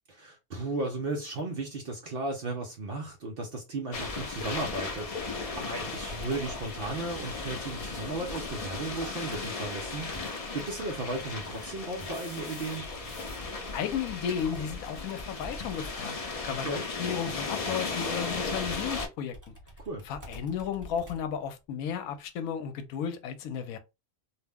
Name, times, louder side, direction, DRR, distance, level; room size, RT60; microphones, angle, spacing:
voice 1, 0.1-5.1 5.6-10.1 10.5-12.9 16.5-16.8 19.9-20.0, right 2 dB, 60° right, 0.7 m, -35 dB
sound 1, 3.9-19.1, left 3 dB, 60° left, 0.3 m, -36 dB
Computer keyboard, 4.7-10.9 12.8-21.4, left 1 dB, 15° right, 0.9 m, -49 dB
sound 2, 9.7-14.1, left 2 dB, 30° left, 0.7 m, -52 dB
voice 2, 13.7-16.2 16.5-19.5 20.1-23.8, left 8 dB, 85° left, 1.0 m, -34 dB
2.5 x 2.0 x 3.4 m
omnidirectional pair, 1.5 m